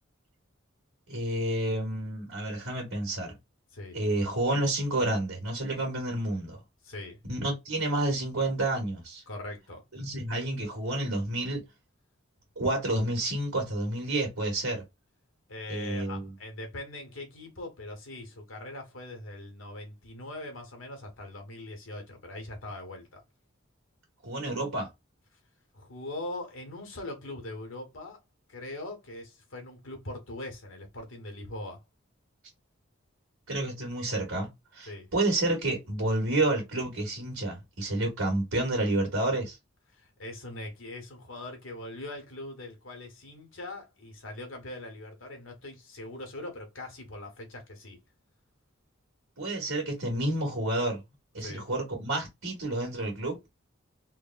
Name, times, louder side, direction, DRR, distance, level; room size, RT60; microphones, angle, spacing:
voice 1, 1.1-3.3 3.9-6.6 7.3-9.2 9.9-11.6 12.5-14.8 15.7-16.3 24.2-24.9 33.5-34.5 34.7-39.6 49.4-51.0 51.3-53.4, right 1 dB, 90° right, 1.4 m, -29 dB
voice 2, 6.8-7.2 9.3-9.8 15.5-23.2 25.7-28.2 28.5-31.8 34.9-35.1 39.9-48.0 51.4-51.7, left 2 dB, 75° left, 1.3 m, -41 dB
3.3 x 2.2 x 2.2 m
head